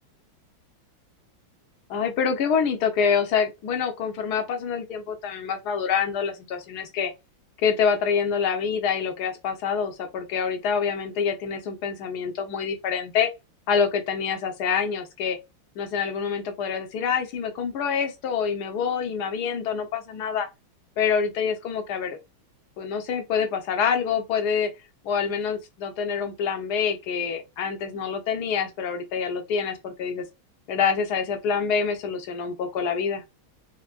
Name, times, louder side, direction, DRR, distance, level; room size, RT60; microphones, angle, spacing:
voice 1, 1.9-7.1 7.6-13.3 13.7-15.4 15.8-20.5 21.0-22.2 22.8-24.7 25.0-30.2 30.7-33.2, left 6 dB, 65° left, 1.1 m, -26 dB
4.4 x 2.0 x 2.4 m
omnidirectional pair, 2.3 m